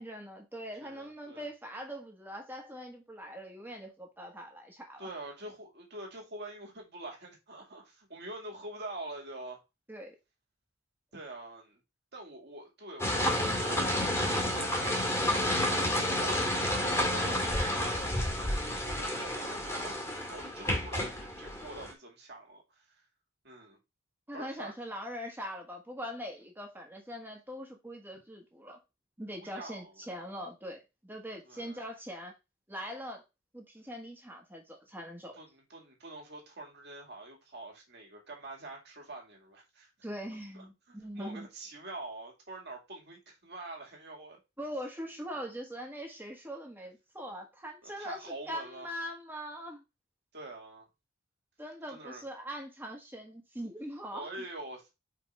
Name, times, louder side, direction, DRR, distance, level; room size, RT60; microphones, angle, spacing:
voice 1, 0.0-5.1 9.9-10.2 24.3-28.8 29.2-32.3 32.7-33.2 33.5-35.4 40.0-41.5 44.6-49.8 51.6-54.4, equal, 10° right, 1.4 m, -42 dB
voice 2, 0.8-1.5 5.0-9.6 11.1-11.8 12.1-22.9 23.4-23.8 24.3-24.7 29.3-29.9 31.4-31.8 35.3-39.9 40.5-44.4 47.8-48.9 50.3-50.9 51.9-52.2 54.1-54.9, right 2 dB, 50° right, 2.4 m, -45 dB
sound 1, 13.0-21.9, left 1 dB, 10° left, 1.6 m, -30 dB
5.3 x 3.8 x 4.7 m
head